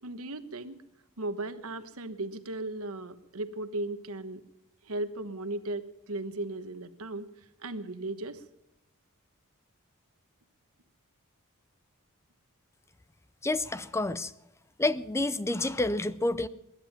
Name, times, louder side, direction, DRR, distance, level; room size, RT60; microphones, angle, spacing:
voice 1, 0.0-0.8 1.2-4.4 4.8-7.3 7.6-8.4, right 2 dB, 70° right, 11 dB, 1.2 m, -36 dB
voice 2, 13.4-14.3 14.8-16.5, left 2 dB, 10° left, 15 dB, 0.5 m, -29 dB
20.5 x 11.0 x 5.7 m, 0.90 s
head